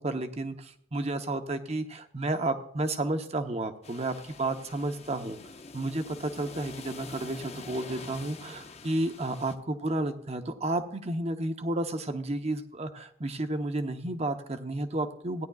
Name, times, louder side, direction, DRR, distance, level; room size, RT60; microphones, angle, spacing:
voice 1, 0.0-5.4 5.7-15.5, right 2 dB, 30° right, 7 dB, 0.9 m, -32 dB
sound 1, 3.8-9.6, left 4 dB, 30° left, 0.7 m, -46 dB
17.0 x 10.5 x 2.4 m, 0.68 s
head